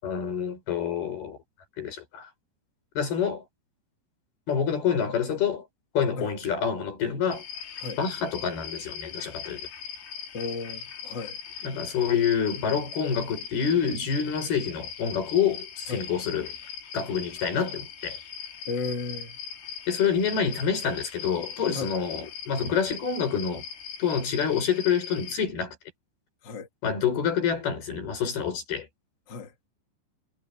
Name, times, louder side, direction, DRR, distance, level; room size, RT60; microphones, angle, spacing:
voice 1, 0.0-1.4 1.8-2.3 3.0-3.4 4.5-5.7 5.9-7.4 8.0-9.7 11.6-16.6 16.9-18.2 19.9-23.7 24.0-25.8 26.8-28.9, left 7 dB, 55° left, 7.5 m, -27 dB
sound 1, 7.3-25.4, left 7 dB, 75° left, 5.5 m, -40 dB
voice 2, 10.3-11.4 15.9-16.1 18.7-19.4 21.7-21.9 26.4-26.7 29.3-29.5, left 3 dB, 40° left, 1.6 m, -34 dB
omnidirectional pair, 5.3 m